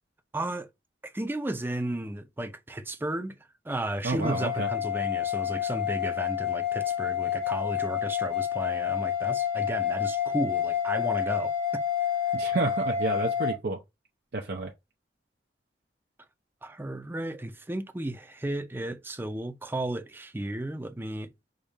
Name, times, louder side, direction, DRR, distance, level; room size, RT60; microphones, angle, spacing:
voice 1, 0.3-0.7 1.0-3.4 3.7-11.5 16.6-21.3, right 1 dB, 10° right, 0.5 m, -34 dB
voice 2, 4.0-4.7 12.3-13.8 14.3-14.7, right 3 dB, 60° right, 0.6 m, -30 dB
sound 1, 4.2-13.5, left 9 dB, 65° left, 1.5 m, -29 dB
5.1 x 2.4 x 4.0 m
head